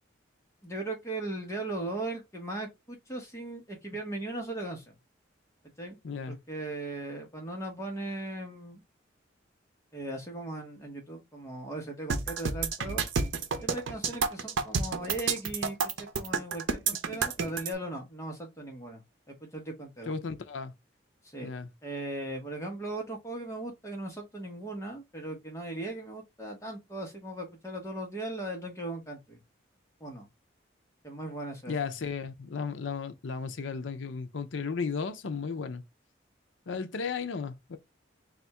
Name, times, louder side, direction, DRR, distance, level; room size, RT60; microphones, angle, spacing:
voice 1, 0.6-4.9 5.8-6.0 6.3-8.8 9.9-13.0 13.6-19.0 19.3-20.1 21.2-21.5 21.8-29.4 30.0-30.3 31.0-31.7, right 2 dB, 15° left, 1.1 m, -38 dB
voice 2, 6.0-6.4 20.1-20.7 21.4-21.7 31.7-35.8 36.7-37.8, left 5 dB, 75° left, 0.5 m, -34 dB
sound 1, 12.1-17.7, right 5 dB, 85° right, 0.6 m, -29 dB
3.5 x 2.5 x 4.1 m
head